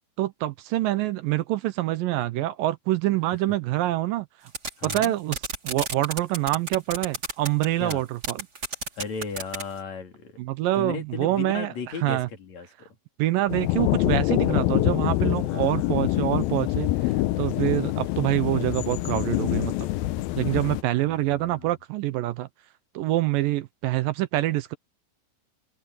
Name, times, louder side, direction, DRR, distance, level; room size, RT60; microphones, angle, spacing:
voice 1, 0.2-4.5 4.8-5.4 5.6-8.5 10.4-11.7 12.0-12.3 13.2-16.9 17.4-19.9 20.4-22.5 22.9-24.8, right 15 dB, 75° right, 2.2 m, -26 dB
sound 1, 4.5-5.1 5.3-7.7 7.9-8.0 8.2-9.6, right 4 dB, 25° right, 3.1 m, -30 dB
voice 2, 4.8-5.1 7.8-8.0 9.0-10.4 10.8-12.9 15.5-16.0 21.0-21.7, left 5 dB, 45° left, 3.9 m, -36 dB
sound 2, 13.5-20.8, left 16 dB, 80° left, 2.5 m, -25 dB
omnidirectional pair, 4.5 m